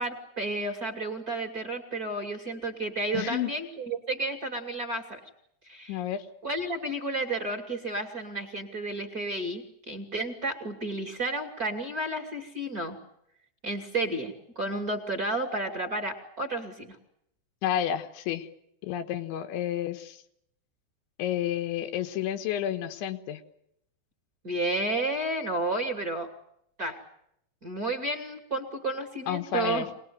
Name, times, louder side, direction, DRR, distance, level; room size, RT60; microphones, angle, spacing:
voice 1, 0.0-5.2 5.6-6.0 6.4-13.0 13.6-17.0 24.4-26.3 26.8-27.0 27.6-29.9, right 2 dB, 30° right, 4 dB, 2.0 m, -32 dB
voice 2, 3.1-3.5 5.9-6.3 17.6-18.5 18.8-20.2 21.2-23.4 29.3-29.9, left 10 dB, 90° left, 8 dB, 3.9 m, -30 dB
25.5 x 20.0 x 9.5 m, 0.75 s
omnidirectional pair, 5.2 m